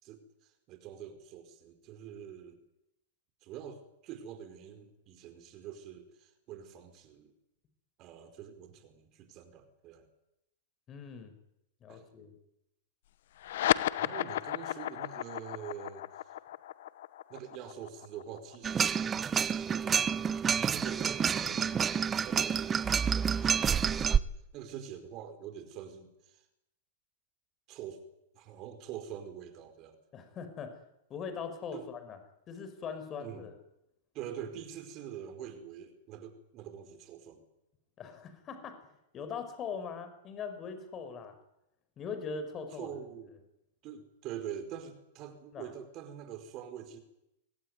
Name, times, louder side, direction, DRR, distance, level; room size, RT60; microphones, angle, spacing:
voice 1, 0.0-2.6 3.4-7.3 8.0-10.1 11.9-12.0 14.0-16.1 17.3-21.8 22.2-24.3 24.5-26.5 27.7-28.0 28.3-30.0 31.7-31.9 33.2-33.5 34.1-37.4 42.7-43.3 43.8-47.0, right 9 dB, 40° right, 8 dB, 5.0 m, -45 dB
voice 2, 10.9-11.4 11.8-12.4 30.1-30.8 31.1-32.2 32.5-33.5 38.0-38.8 39.1-41.3 42.0-43.0 45.5-45.7, left 6 dB, 30° left, 9 dB, 5.2 m, -41 dB
sound 1, 13.4-20.2, left 13 dB, 70° left, 1.1 m, -34 dB
sound 2, 18.6-24.2, right 7 dB, 20° right, 0.9 m, -28 dB
24.0 x 17.5 x 9.7 m, 0.84 s
hypercardioid pair, 115°, 0 cm